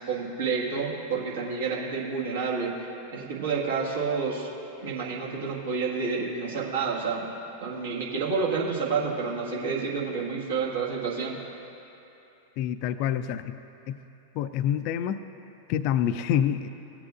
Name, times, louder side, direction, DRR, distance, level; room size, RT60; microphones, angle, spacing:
voice 1, 0.1-2.7 3.1-4.5 4.8-7.3 7.6-11.3, right 5 dB, 65° right, -4 dB, 1.7 m, -29 dB
voice 2, 12.6-13.6 13.9-14.0 14.3-15.2 15.7-16.7, left 10 dB, 45° left, 12 dB, 0.4 m, -27 dB
17.5 x 8.5 x 2.5 m, 3.0 s
figure-of-eight pair, 90°, 0 cm